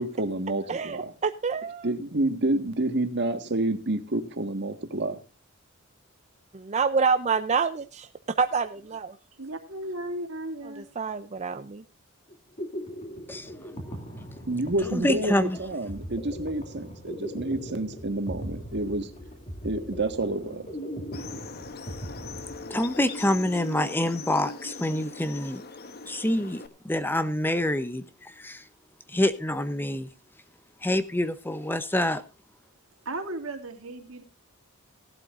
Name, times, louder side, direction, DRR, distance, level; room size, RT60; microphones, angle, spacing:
voice 1, 0.0-1.1 1.8-5.2 14.5-19.1 19.6-20.7, right 2 dB, 55° right, 1.6 m, -29 dB
voice 2, 0.7-1.9 6.7-9.2 11.0-11.8, right 5 dB, 35° right, 0.5 m, -27 dB
voice 3, 9.3-10.9 33.0-34.2, right 1 dB, 75° right, 2.5 m, -35 dB
sound 1, 12.3-23.1, equal, 35° left, 2.5 m, -39 dB
voice 4, 14.8-15.6 22.7-25.6 26.1-28.6 29.1-30.1 30.8-32.2, left 1 dB, 10° left, 0.7 m, -26 dB
sound 2, 21.1-26.7, left 3 dB, 50° left, 1.1 m, -40 dB
18.0 x 12.0 x 2.5 m
head